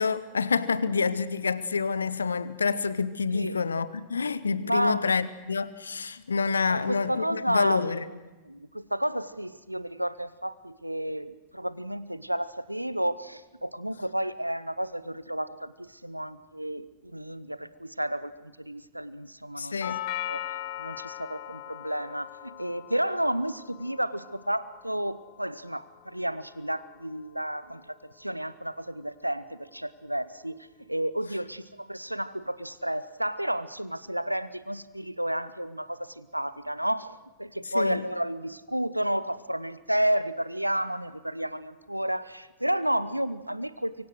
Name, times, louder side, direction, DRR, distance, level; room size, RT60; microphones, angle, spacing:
voice 1, 0.0-8.0 19.6-20.0 37.7-38.0, left 5 dB, 75° left, 0.8 m, -27 dB
voice 2, 4.6-5.1 6.6-8.2 8.4-19.8 20.1-44.1, right 1 dB, 90° right, 0.7 m, -31 dB
Doorbell, 19.8-27.9, left 13 dB, 45° left, 1.2 m, -40 dB
25.0 x 23.5 x 6.4 m
figure-of-eight pair, 90°, 0 cm